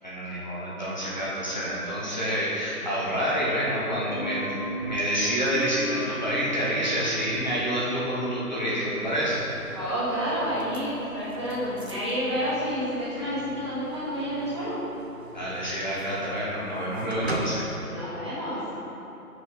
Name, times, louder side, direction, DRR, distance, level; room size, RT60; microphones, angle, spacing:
voice 1, 0.0-9.4 15.3-17.7, equal, 30° left, -8 dB, 1.1 m, -28 dB
sound 1, 1.0-13.3, equal, 65° left, 0.9 m, -41 dB
sound 2, 9.0-17.4, right 2 dB, 45° right, 0.8 m, -42 dB
voice 2, 9.7-14.8 17.9-18.6, equal, 20° right, -12 dB, 1.3 m, -29 dB
6.1 x 5.0 x 5.6 m, 3.0 s
figure-of-eight pair, 165°, 45 cm